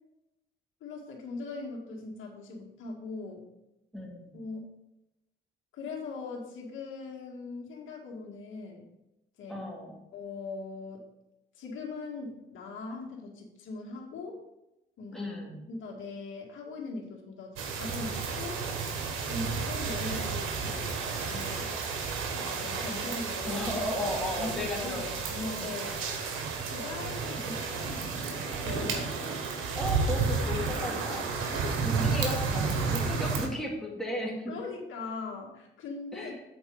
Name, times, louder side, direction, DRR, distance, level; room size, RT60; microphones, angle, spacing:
voice 1, 0.8-3.5 4.3-4.6 5.7-8.8 9.4-9.6 10.1-11.0 11.5-14.4 15.0-15.3 15.7-18.6 19.3-21.7 22.3-23.7 24.3-25.9 26.7-29.2 31.5-32.3 34.5-36.3, left 3 dB, 75° left, -1 dB, 2.1 m, -40 dB
voice 2, 3.9-4.3 9.5-10.0 15.1-15.6 23.5-25.1 25.6-25.9 29.7-31.3 31.8-34.5 36.1-36.3, left 1 dB, ahead, -3 dB, 2.3 m, -35 dB
sound 1, 17.6-33.5, right 5 dB, 90° right, 1.3 m, -32 dB
8.0 x 4.5 x 5.4 m, 0.91 s
cardioid pair, 90°, 20 cm